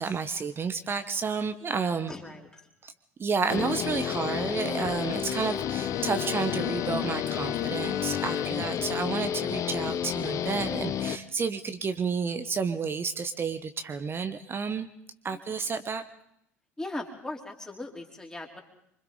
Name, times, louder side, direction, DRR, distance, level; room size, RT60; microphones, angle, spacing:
voice 1, 0.0-2.1 2.8-2.9 3.2-14.9 15.2-16.0, right 5 dB, 25° right, 10 dB, 1.1 m, -31 dB
voice 2, 2.1-2.7 15.3-15.7 16.8-18.6, left 2 dB, 5° left, 1 dB, 3.5 m, -39 dB
Guitar, 3.5-11.2, left 9 dB, 40° left, 0.9 m, -31 dB
Bowed string instrument, 4.7-8.8, left 12 dB, 75° left, 1.1 m, -39 dB
26.5 x 25.0 x 4.0 m, 0.77 s
figure-of-eight pair, 70°, 8 cm